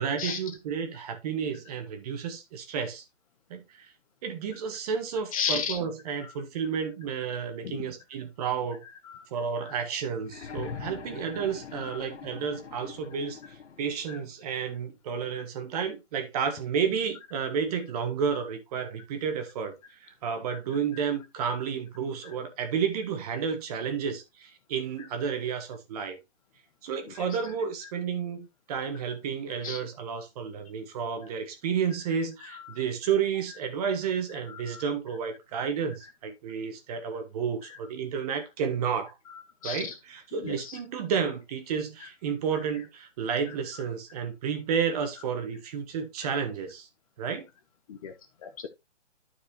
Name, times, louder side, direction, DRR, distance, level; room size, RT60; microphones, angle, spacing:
voice 1, 0.0-3.0 3.5-3.9 4.2-8.8 9.3-13.4 13.8-26.2 26.8-39.1 39.6-46.9 47.2-47.4, right 7 dB, 30° right, 1.6 m, -31 dB
voice 2, 5.3-5.8 6.2-6.3 7.6-7.9 9.0-9.3 9.6-9.8 11.8-12.0 14.1-14.2 20.5-20.6 20.9-21.0 25.0-25.1 27.2-27.3 29.6-29.8 32.4-32.8 34.5-34.8 37.7-37.8 39.3-39.9 40.3-40.8 42.0-42.1 43.5-43.8 47.9-48.1 48.4-48.7, left 7 dB, 30° left, 0.8 m, -36 dB
sound 1, 10.2-14.1 15.3-15.4, left 6 dB, 70° left, 1.4 m, -42 dB
12.0 x 4.7 x 2.9 m
hypercardioid pair, 150°, 36 cm